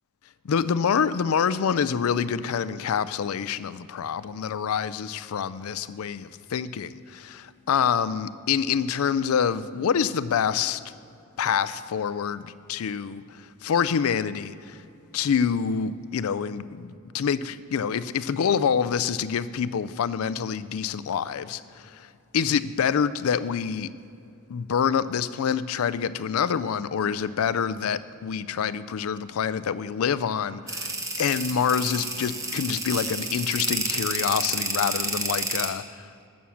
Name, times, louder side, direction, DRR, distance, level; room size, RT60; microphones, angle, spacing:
voice 1, 0.4-10.8 11.4-14.8 15.1-22.1 22.3-23.9 24.5-36.3, left 7 dB, 85° left, 0.4 m, -26 dB
sound 1, 30.7-35.7, right 3 dB, 15° right, 1.0 m, -30 dB
12.5 x 6.4 x 7.2 m
head